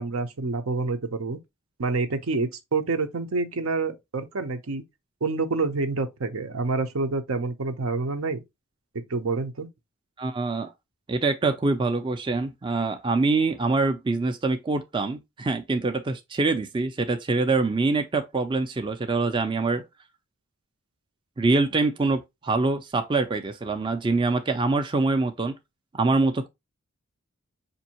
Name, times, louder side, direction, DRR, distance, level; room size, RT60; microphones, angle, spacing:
voice 1, 0.0-1.4 1.8-4.8 5.2-8.4 8.9-9.7, right 3 dB, 75° right, 0.7 m, -27 dB
voice 2, 10.2-10.7 11.1-19.8 21.4-25.6 25.9-26.5, right 3 dB, 25° right, 0.4 m, -24 dB
5.2 x 2.7 x 2.8 m
head